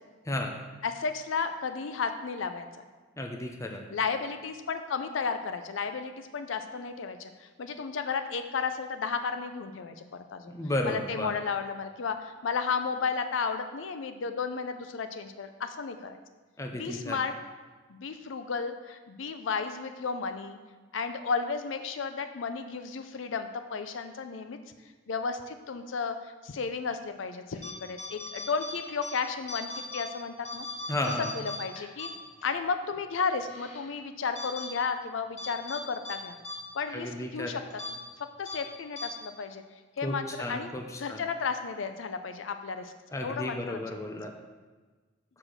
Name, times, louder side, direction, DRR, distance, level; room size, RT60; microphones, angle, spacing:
voice 1, 0.8-2.7 3.9-10.5 10.8-16.2 16.7-17.3 17.9-20.6 20.9-24.6 25.1-30.7 31.3-32.1 32.4-36.4 36.7-37.6 37.9-38.0 38.4-39.6 40.0-40.7 41.0-42.9 43.2-43.8, left 5 dB, 80° left, 8 dB, 0.5 m, -33 dB
voice 2, 3.2-3.8 10.5-11.3 16.6-17.2 30.9-31.3 36.9-37.6 40.0-41.2 43.1-44.3, left 1 dB, 15° left, 2 dB, 0.7 m, -33 dB
sound 1, 27.5-27.7 28.0-29.1 29.5-30.0 30.4-32.5 32.9-33.0 33.5-33.9 34.4-34.7 35.4-35.8 36.0-36.2 36.4-36.6 36.9-37.1 37.7-37.9 38.5-38.6 39.0-39.1, left 3 dB, 35° left, 1.7 m, -39 dB
5.8 x 5.0 x 6.4 m, 1.3 s
head